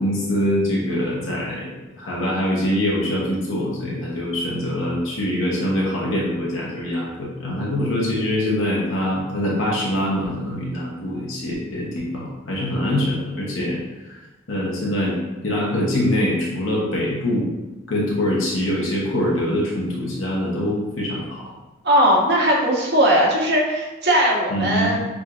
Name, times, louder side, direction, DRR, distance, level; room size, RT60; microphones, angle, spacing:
voice 1, 0.0-13.8 14.1-14.2 14.5-15.2 15.4-17.5 17.9-21.4 24.5-24.9, left 1 dB, 75° left, -4 dB, 0.9 m, -24 dB
voice 2, 21.8-25.0, equal, 55° right, -3 dB, 1.0 m, -18 dB
6.2 x 2.6 x 2.4 m, 1.1 s
head